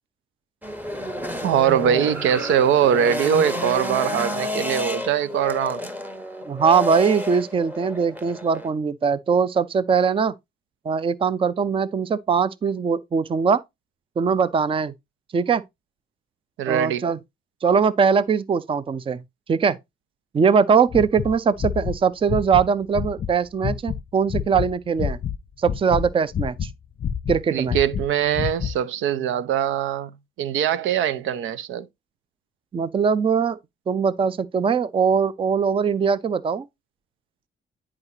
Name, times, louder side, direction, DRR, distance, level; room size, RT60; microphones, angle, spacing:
sound 1, 0.6-8.7, left 1 dB, 10° right, 0.9 m, -30 dB
voice 1, 1.4-5.9 16.6-17.1 27.5-30.1 30.4-31.9, right 9 dB, 80° right, 0.6 m, -22 dB
voice 2, 6.5-10.3 10.9-13.6 14.2-14.9 15.3-15.6 16.7-17.2 17.6-19.2 19.5-19.8 20.3-25.2 25.6-26.7 27.3-27.8 32.7-33.6 33.9-36.7, right 6 dB, 25° right, 0.5 m, -21 dB
sound 2, 20.9-23.3 23.6-24.0 24.3-25.4 25.6-26.7 27.0-28.8, left 8 dB, 45° left, 0.6 m, -27 dB
9.6 x 4.9 x 2.7 m
cardioid pair, 90°, 20 cm